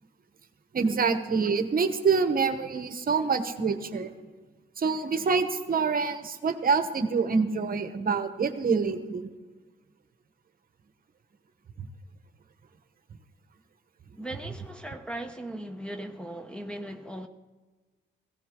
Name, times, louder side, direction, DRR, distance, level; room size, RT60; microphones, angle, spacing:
voice 1, 0.7-4.1 4.8-9.3 11.8-11.9, right 5 dB, 45° right, 1.1 m, -26 dB
voice 2, 14.2-17.3, right 1 dB, 5° left, 0.8 m, -38 dB
17.5 x 15.5 x 3.8 m
cardioid pair, 115°, 20 cm